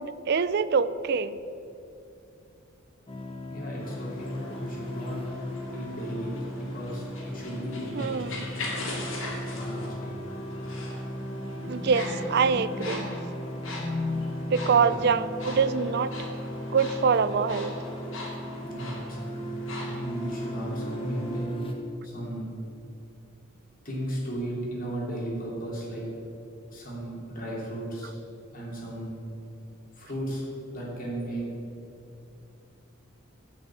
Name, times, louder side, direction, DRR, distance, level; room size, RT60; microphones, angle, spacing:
voice 1, 0.0-1.4 8.0-8.4 11.7-13.1 14.5-16.1 16.7-17.7, right 5 dB, 50° right, 15 dB, 0.4 m, -25 dB
sound 1, 3.1-21.7, left 1 dB, 25° left, 1.0 m, -36 dB
voice 2, 3.5-5.2 5.7-8.7 9.5-10.3 14.8-15.0 18.6-19.4 19.8-21.6 22.0-22.5 23.8-26.0 26.7-28.1 28.5-29.2 29.9-31.4, right 1 dB, 40° left, -4 dB, 3.0 m, -36 dB
sound 2, 3.7-21.4, left 2 dB, 65° left, 2.2 m, -42 dB
10.0 x 5.5 x 8.4 m, 2.7 s
head